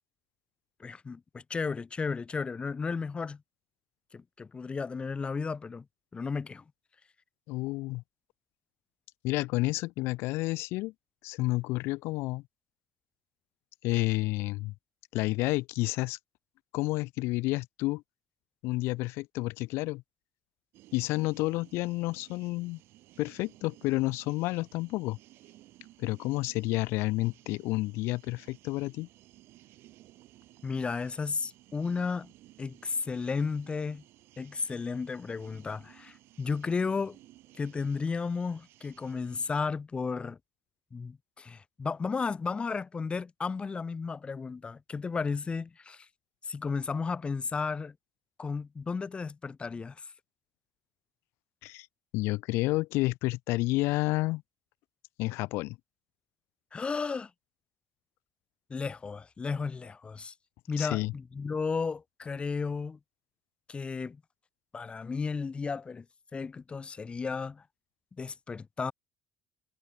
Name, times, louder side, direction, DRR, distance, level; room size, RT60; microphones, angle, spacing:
voice 1, 0.8-3.4 4.1-5.8 6.1-6.6 30.6-32.3 32.6-34.0 34.4-37.2 37.6-40.4 40.9-46.1 46.4-47.9 48.4-50.0 56.7-57.3 58.7-60.3 60.7-63.0 63.7-64.2 64.7-66.0 66.3-67.6 68.2-68.9, left 5 dB, 25° left, 1.1 m, -33 dB
voice 2, 7.5-8.0 9.2-10.9 11.2-12.4 13.8-14.7 15.1-16.2 16.7-18.0 18.6-20.0 20.9-22.8 23.2-25.2 26.0-29.1 51.6-51.9 52.1-54.4 55.2-55.8 60.8-61.1, left 21 dB, 80° left, 0.4 m, -30 dB
sound 1, 20.7-39.6, right 16 dB, 70° right, 6.6 m, -58 dB
cardioid pair, 105°, 4 cm